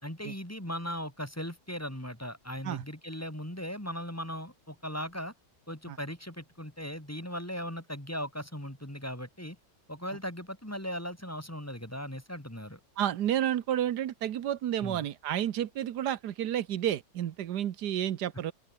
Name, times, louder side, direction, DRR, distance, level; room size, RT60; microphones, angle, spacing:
voice 1, 0.0-5.3 5.7-9.6 9.9-12.8 14.8-15.0, equal, 10° left, 3.8 m, -38 dB
voice 2, 13.0-18.5, right 11 dB, 85° right, 1.5 m, -31 dB
open air
omnidirectional pair, 1.7 m